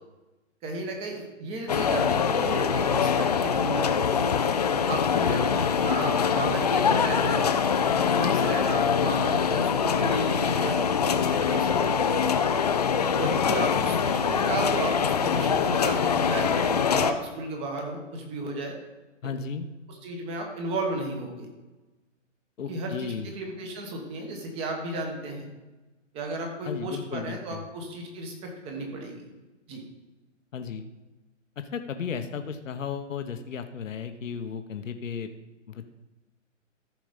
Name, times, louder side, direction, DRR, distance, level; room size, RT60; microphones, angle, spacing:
voice 1, 0.6-4.3 4.9-7.5 7.9-11.9 13.1-18.8 19.9-21.5 22.7-25.4 26.1-29.3 29.7-29.8, right 2 dB, 15° right, 2 dB, 1.3 m, -34 dB
sound 1, 1.7-17.1, left 6 dB, 35° left, 0.5 m, -24 dB
voice 2, 4.9-5.7 13.2-14.0 19.2-19.7 22.6-23.3 26.6-27.6 30.5-30.9 31.7-35.3 35.7-35.8, left 6 dB, 75° left, 7 dB, 1.0 m, -35 dB
14.0 x 5.2 x 5.1 m, 1.1 s
hypercardioid pair, 155°, 38 cm